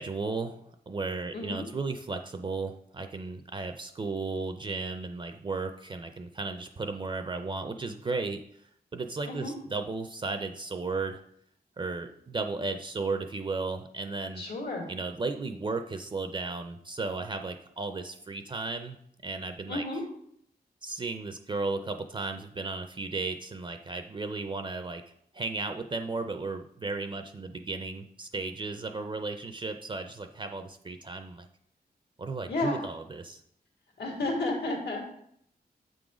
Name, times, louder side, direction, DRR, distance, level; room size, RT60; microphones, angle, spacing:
voice 1, 0.0-8.4 8.9-11.2 11.8-14.4 14.9-19.0 19.2-19.8 20.8-25.0 25.3-31.5 32.2-33.4, right 3 dB, 30° right, 7 dB, 0.4 m, -34 dB
voice 2, 1.3-1.7 9.3-9.5 14.4-14.9 19.7-20.0 32.5-32.8 34.0-35.2, left 2 dB, 85° left, 0 dB, 1.8 m, -32 dB
7.4 x 3.8 x 4.9 m, 0.70 s
wide cardioid pair, 155°, 17 cm